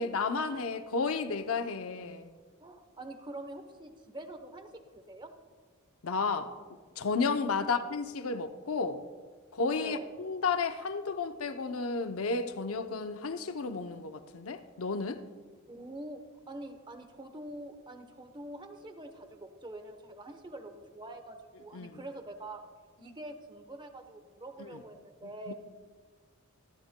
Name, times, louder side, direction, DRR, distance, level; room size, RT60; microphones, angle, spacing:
voice 1, 0.0-2.3 6.0-6.5 7.0-9.0 9.5-15.2 21.7-22.0 24.6-24.7 25.5-25.6, left 4 dB, 70° left, 0.7 m, -32 dB
voice 2, 2.6-5.3 7.6-7.7 9.8-10.1 15.7-16.2 16.5-22.6 23.0-25.5, right 1 dB, 20° right, 0.9 m, -45 dB
26.0 x 11.0 x 2.2 m
head